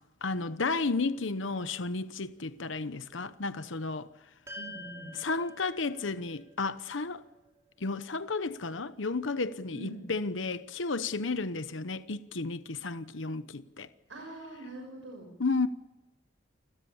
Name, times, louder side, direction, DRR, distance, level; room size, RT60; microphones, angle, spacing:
voice 1, 0.2-4.1 5.1-7.2 7.8-13.9 15.4-15.7, left 3 dB, 80° left, 1.0 m, -32 dB
sound 1, 4.5-8.9, left 1 dB, 15° right, 6.0 m, -49 dB
voice 2, 4.6-5.1 9.7-10.1 14.1-15.3, right 1 dB, 85° right, 6.5 m, -43 dB
29.5 x 22.0 x 7.2 m
head